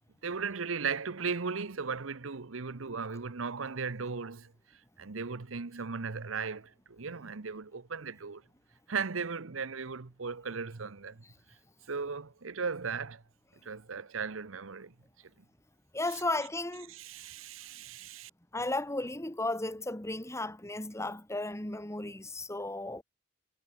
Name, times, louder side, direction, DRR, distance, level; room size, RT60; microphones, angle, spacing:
voice 1, 0.2-8.4 8.9-11.2 11.9-13.2 13.6-14.9 16.9-18.3, right 5 dB, 85° right, 1.0 m, -37 dB
voice 2, 15.9-16.9 18.5-23.0, left 2 dB, 15° left, 2.3 m, -34 dB
head